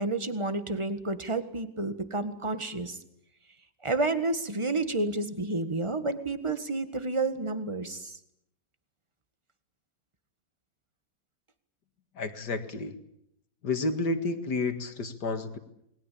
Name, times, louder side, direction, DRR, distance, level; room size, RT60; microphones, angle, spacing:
voice 1, 0.0-3.0 3.8-8.2, right 2 dB, 15° right, 10 dB, 1.7 m, -30 dB
voice 2, 12.2-12.9 13.6-15.6, left 3 dB, 60° left, 8 dB, 2.4 m, -30 dB
28.5 x 21.0 x 8.6 m, 0.76 s
omnidirectional pair, 2.0 m